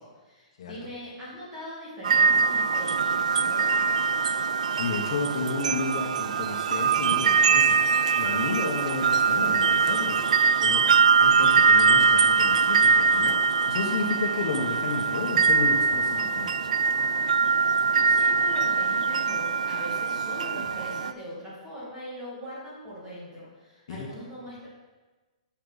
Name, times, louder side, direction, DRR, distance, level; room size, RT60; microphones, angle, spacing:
voice 1, 0.0-3.9 17.9-24.7, equal, 10° right, -7 dB, 2.2 m, -41 dB
sound 1, 2.0-21.1, right 5 dB, 75° right, 0.3 m, -22 dB
voice 2, 4.7-7.8 8.1-10.2 10.6-10.8 11.2-13.3 13.7-16.5 23.9-24.1, left 4 dB, 45° left, 1 dB, 1.0 m, -32 dB
8.5 x 6.0 x 4.0 m, 1.2 s
hypercardioid pair, 175°, 4 cm